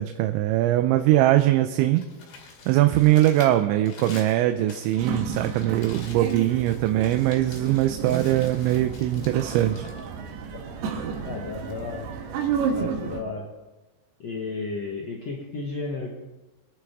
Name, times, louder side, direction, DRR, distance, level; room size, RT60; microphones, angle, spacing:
voice 1, 0.0-2.0 2.7-9.9, right 14 dB, 90° right, 7 dB, 3.0 m, -21 dB
Crumpling crinkling, 2.0-10.9, left 5 dB, 65° left, 4.2 m, -47 dB
sound 1, 5.0-13.2, right 6 dB, 70° right, 3.2 m, -32 dB
voice 2, 11.2-12.1 12.7-13.5 14.2-16.1, left 3 dB, 85° left, -1 dB, 1.4 m, -33 dB
25.5 x 11.0 x 3.6 m, 1.1 s
omnidirectional pair, 5.2 m